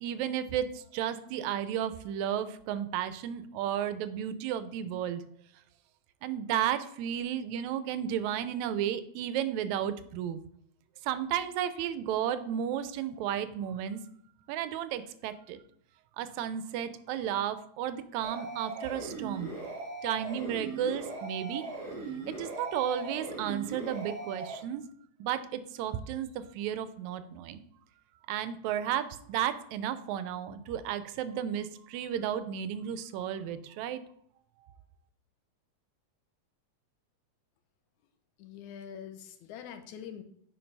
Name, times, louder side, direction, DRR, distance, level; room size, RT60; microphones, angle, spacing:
voice 1, 0.0-5.2 6.2-10.4 11.0-14.0 14.5-15.6 16.2-19.5 20.0-21.6 22.3-24.8 25.2-27.6 28.3-34.0, right 10 dB, 85° right, 12 dB, 1.9 m, -33 dB
sound 1, 18.2-24.6, right 3 dB, 45° right, 1.5 m, -39 dB
voice 2, 38.4-40.2, left 8 dB, 80° left, 8 dB, 2.2 m, -44 dB
7.7 x 4.5 x 5.3 m, 0.68 s
omnidirectional pair, 3.3 m